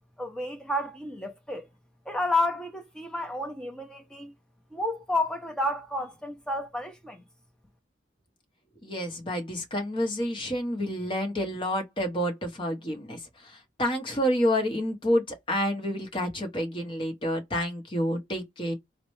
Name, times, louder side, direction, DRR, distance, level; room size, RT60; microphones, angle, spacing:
voice 1, 0.2-1.7 2.1-4.3 4.7-7.2, left 1 dB, 5° left, 0.6 m, -31 dB
voice 2, 8.8-13.2 13.8-18.7, equal, 30° left, 1.0 m, -29 dB
3.8 x 2.1 x 3.1 m
head